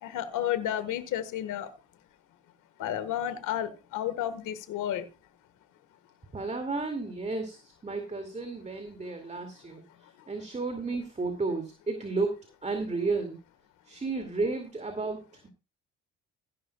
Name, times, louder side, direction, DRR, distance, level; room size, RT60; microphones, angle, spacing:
voice 1, 0.0-1.7 2.8-5.0, left 11 dB, 85° left, 12 dB, 1.5 m, -31 dB
voice 2, 6.3-9.8 10.3-13.4 13.8-15.5, right 3 dB, 25° right, 6 dB, 2.3 m, -32 dB
15.5 x 11.0 x 2.3 m, 0.30 s
cardioid pair, 90°, 30 cm